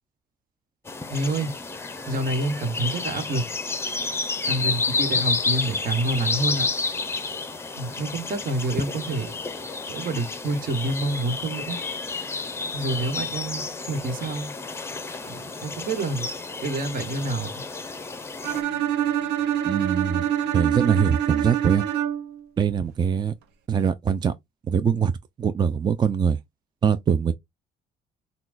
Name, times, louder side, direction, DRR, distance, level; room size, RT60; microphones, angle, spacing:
sound 1, 0.9-18.6, left 4 dB, 15° left, 0.7 m, -30 dB
voice 1, 1.1-1.5 2.1-3.4 4.4-6.7 7.7-9.4 9.9-11.8 12.7-14.5 15.2-16.3 16.6-17.6, right 2 dB, 55° right, 1.3 m, -28 dB
Bowed string instrument, 18.4-22.4, right 10 dB, 85° right, 0.7 m, -25 dB
voice 2, 19.6-20.2 20.5-21.9 22.6-23.3 23.7-24.3 24.7-25.1 25.4-26.4 26.8-27.3, right 7 dB, 25° right, 0.4 m, -22 dB
5.8 x 2.3 x 2.4 m
cardioid pair, 110°, 17 cm